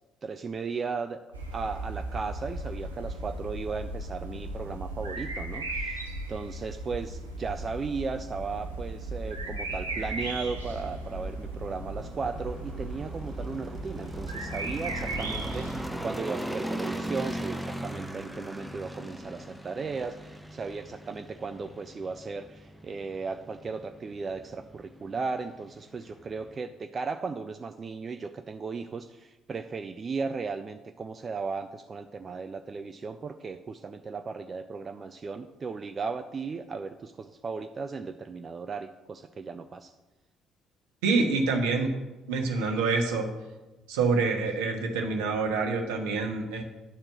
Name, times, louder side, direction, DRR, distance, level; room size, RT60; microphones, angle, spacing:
voice 1, 0.2-1.2 1.5-39.9, right 4 dB, 35° right, 8 dB, 0.4 m, -36 dB
sound 1, 1.3-15.8, right 2 dB, 85° right, 0.7 m, -36 dB
sound 2, 7.2-26.6, right 1 dB, ahead, 1.0 m, -40 dB
voice 2, 41.0-41.9 42.3-43.3 43.9-46.6, right 4 dB, 70° right, 3 dB, 1.2 m, -26 dB
10.5 x 4.4 x 6.3 m, 1.1 s
figure-of-eight pair, 50°, 0 cm